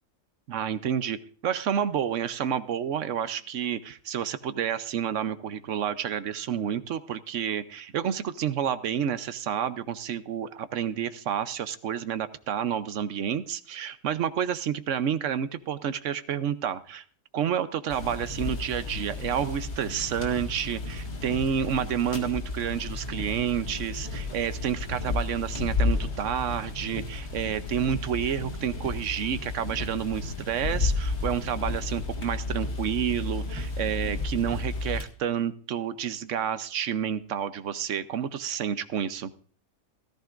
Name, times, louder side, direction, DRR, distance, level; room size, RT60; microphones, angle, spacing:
voice 1, 0.5-17.0 17.3-39.3, right 9 dB, 60° right, 12 dB, 1.0 m, -29 dB
sound 1, 17.9-35.0, left 3 dB, 65° left, 2.4 m, -32 dB
17.0 x 14.0 x 2.5 m, 0.44 s
omnidirectional pair, 1.7 m